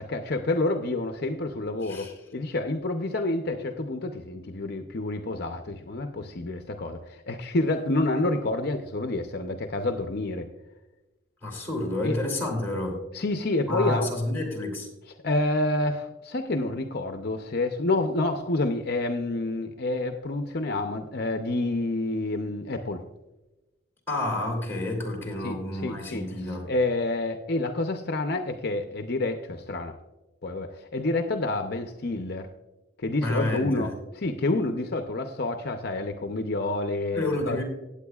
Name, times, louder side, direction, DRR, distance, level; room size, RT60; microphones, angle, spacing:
voice 1, 0.0-10.5 12.0-12.2 13.1-14.1 15.2-23.0 25.4-29.9 30.4-32.5 33.0-33.9 34.2-37.6, left 2 dB, 55° left, 6 dB, 0.6 m, -28 dB
voice 2, 1.8-2.1 11.4-13.0 13.7-14.9 24.1-26.7 33.2-33.9 37.1-37.6, left 1 dB, 10° left, 0 dB, 2.8 m, -29 dB
16.5 x 8.6 x 2.4 m, 1.1 s
head